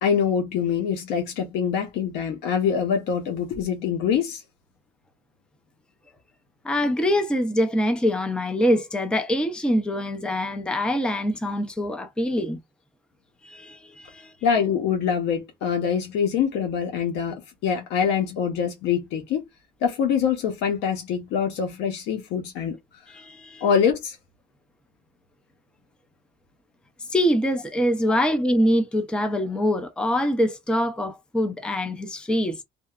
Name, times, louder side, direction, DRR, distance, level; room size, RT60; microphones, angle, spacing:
voice 1, 0.0-4.4 14.4-19.4 19.8-22.8 23.6-24.2 28.1-28.2, left 7 dB, 90° left, 0.7 m, -24 dB
voice 2, 6.6-12.6 13.4-14.3 23.1-23.6 27.1-32.6, equal, 5° left, 0.5 m, -24 dB
2.7 x 2.1 x 2.3 m
cardioid pair, 110°, 17 cm